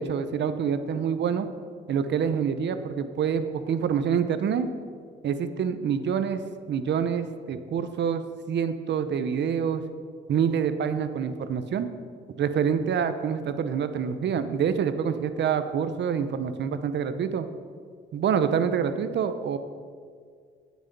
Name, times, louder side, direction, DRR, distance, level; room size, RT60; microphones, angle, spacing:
voice 1, 0.0-1.5 1.9-4.7 5.2-6.4 6.7-8.2 8.5-9.8 10.3-11.9 12.4-17.5 18.1-19.6, right 7 dB, 60° right, 10 dB, 0.8 m, -26 dB
16.0 x 6.3 x 5.3 m, 2.1 s
cardioid pair, 90°, 20 cm